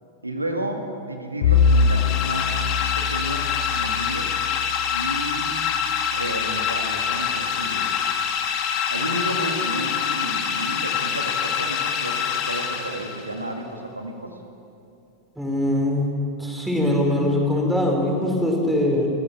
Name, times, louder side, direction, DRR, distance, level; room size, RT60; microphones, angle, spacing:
voice 1, 0.2-4.3 4.9-5.7 6.1-7.9 8.9-14.4, right 1 dB, 85° right, 3 dB, 2.0 m, -32 dB
Bowed string instrument, 1.4-6.0, left 5 dB, 60° left, 1.4 m, -24 dB
sound 1, 1.5-13.4, left 8 dB, 40° left, 2.4 m, -26 dB
voice 2, 15.3-16.1 16.4-19.1, left 1 dB, 5° right, 0 dB, 4.7 m, -22 dB
28.0 x 15.0 x 6.7 m, 2.7 s
figure-of-eight pair, 90°, 0 cm